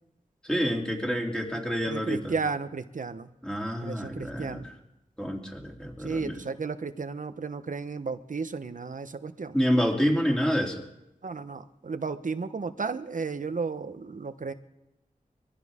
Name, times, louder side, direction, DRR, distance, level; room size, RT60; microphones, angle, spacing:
voice 1, 0.4-2.3 3.4-4.7 5.2-6.4 9.5-10.8, equal, 5° left, 0 dB, 3.1 m, -28 dB
voice 2, 1.9-3.3 3.8-4.7 6.0-9.6 11.2-14.5, right 4 dB, 60° right, 10 dB, 1.0 m, -33 dB
23.0 x 15.0 x 3.7 m, 0.90 s
wide cardioid pair, 65°, 15 cm